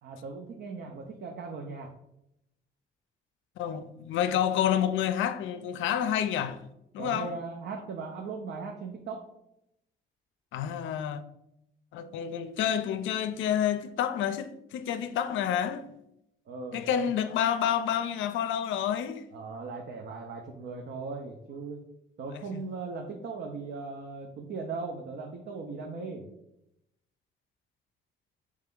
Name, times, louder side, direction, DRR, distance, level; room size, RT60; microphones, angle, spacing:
voice 1, 0.0-1.9 7.0-9.2 16.5-17.1 19.3-21.8 22.2-26.3, right 4 dB, 60° right, 0.6 m, -38 dB
voice 2, 3.6-6.6 6.9-7.3 10.5-11.2 11.9-15.9 16.7-19.2 22.5-22.6, left 9 dB, 75° left, 0.4 m, -29 dB
3.3 x 3.1 x 3.7 m
cardioid pair, 90°, 20 cm